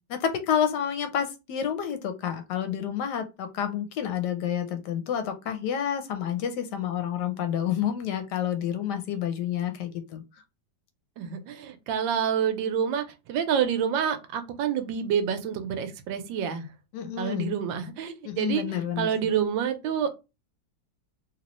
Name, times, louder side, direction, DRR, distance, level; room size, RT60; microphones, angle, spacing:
voice 1, 0.1-10.2 16.9-17.5 18.2-19.1, left 9 dB, 70° left, 8 dB, 1.1 m, -29 dB
voice 2, 11.2-16.7 17.2-20.1, right 8 dB, 85° right, 9 dB, 1.3 m, -28 dB
3.0 x 2.9 x 2.9 m, 0.26 s
omnidirectional pair, 2.0 m